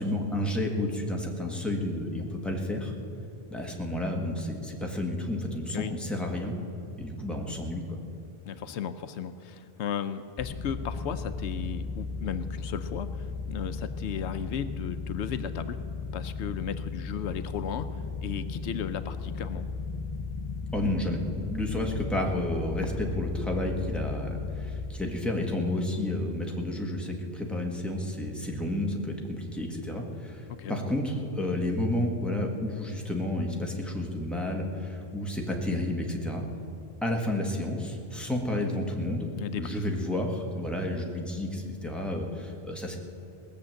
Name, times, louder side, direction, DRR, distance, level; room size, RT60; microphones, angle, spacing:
voice 1, 0.0-2.9 3.5-6.5 7.0-8.0 20.7-36.4 37.0-39.3 39.6-43.0, left 1 dB, ahead, 0 dB, 1.6 m, -31 dB
voice 2, 8.4-15.8 16.1-17.9 18.2-19.7 30.6-30.8 39.4-39.8, left 8 dB, 85° left, 11 dB, 0.9 m, -35 dB
sound 1, 10.4-24.9, left 4 dB, 30° left, 0.7 m, -35 dB
19.0 x 7.2 x 7.6 m, 2.8 s
omnidirectional pair, 1.1 m